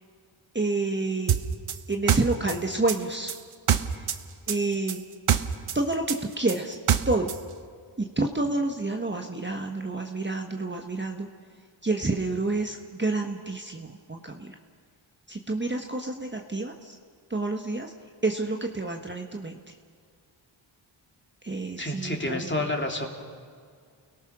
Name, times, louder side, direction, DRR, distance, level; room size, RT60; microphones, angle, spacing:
voice 1, 0.5-1.3 1.9-3.3 4.5-5.0 5.7-6.0 6.4-6.8 7.1-7.3 8.0-11.3 11.8-14.5 15.3-16.9 17.3-17.9 18.2-19.6 21.4-22.5, right 2 dB, 20° right, 3 dB, 1.4 m, -29 dB
sound 1, 1.3-4.2 4.5-7.4, right 9 dB, 80° right, 1.1 m, -25 dB
voice 2, 21.8-23.1, left 1 dB, 20° left, 1 dB, 3.2 m, -29 dB
30.0 x 18.0 x 6.1 m, 2.1 s
wide cardioid pair, 80°, 49 cm